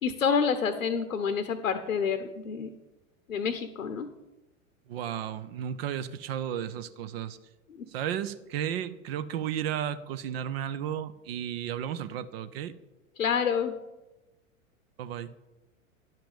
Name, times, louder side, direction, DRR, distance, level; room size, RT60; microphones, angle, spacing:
voice 1, 0.0-2.7 3.3-4.1 13.2-13.7, left 6 dB, 80° left, 9 dB, 0.9 m, -28 dB
voice 2, 4.9-7.4 7.9-12.7 15.0-15.3, right 9 dB, 45° right, 13 dB, 0.7 m, -33 dB
10.5 x 5.8 x 7.1 m, 1.0 s
figure-of-eight pair, 95°, 41 cm